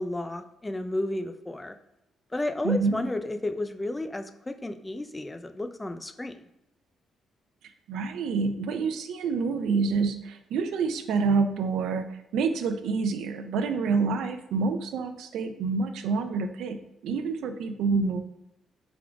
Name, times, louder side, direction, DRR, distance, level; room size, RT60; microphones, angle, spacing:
voice 1, 0.0-1.8 2.3-6.5, left 1 dB, 15° left, 8 dB, 0.3 m, -32 dB
voice 2, 2.6-3.0 7.9-16.8 17.0-18.2, right 4 dB, 80° right, 8 dB, 0.4 m, -27 dB
4.9 x 3.5 x 2.3 m, 0.87 s
cardioid pair, 90°, 0 cm